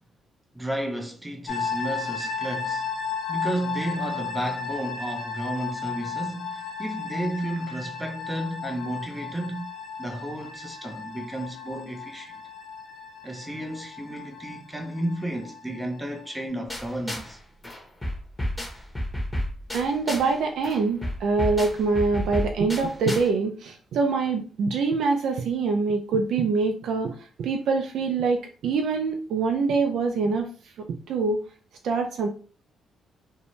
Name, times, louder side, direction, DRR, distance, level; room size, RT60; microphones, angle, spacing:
voice 1, 0.5-2.9 3.3-9.7 10.0-12.4 13.2-17.4, right 1 dB, 10° right, 0.5 m, -32 dB
sound 1, 1.5-16.5, left 5 dB, 65° left, 0.7 m, -34 dB
sound 2, 16.7-17.4 17.6-20.4 20.6-23.3, left 1 dB, 15° left, 0.8 m, -32 dB
voice 2, 19.7-30.5 30.8-31.4 31.8-32.3, right 4 dB, 70° right, 0.4 m, -25 dB
2.6 x 2.1 x 3.0 m
cardioid pair, 90°, 0 cm